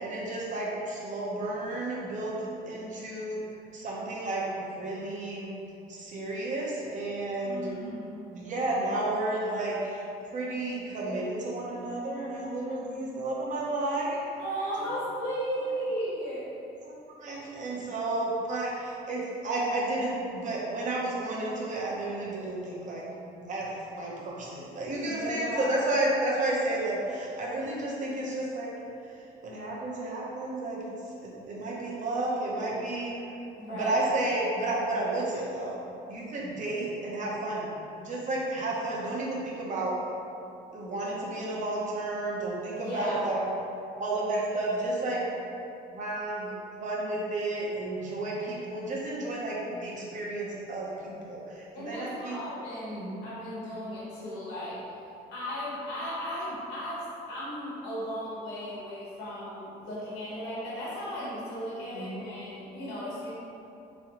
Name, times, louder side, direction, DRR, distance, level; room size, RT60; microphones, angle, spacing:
voice 1, 0.0-2.4 2.7-3.4 3.7-5.5 5.9-7.7 8.3-10.0 10.3-14.2 14.8-14.9 16.9-17.0 17.2-23.0 23.4-28.7 29.4-30.9 31.2-33.1 33.7-35.8 36.1-37.7 38.0-40.0 40.7-43.4 44.0-45.2 45.9-46.5 46.8-52.4 53.0-53.2 61.8-62.3, right 2 dB, 45° right, -4 dB, 0.9 m, -32 dB
voice 2, 7.4-8.4 12.3-13.0 14.4-16.5 25.1-25.9 33.6-34.1 42.8-43.2 51.7-54.8 55.3-63.3, equal, 90° left, -8 dB, 1.1 m, -36 dB
3.6 x 3.2 x 2.9 m, 2.7 s
cardioid pair, 110°, 17 cm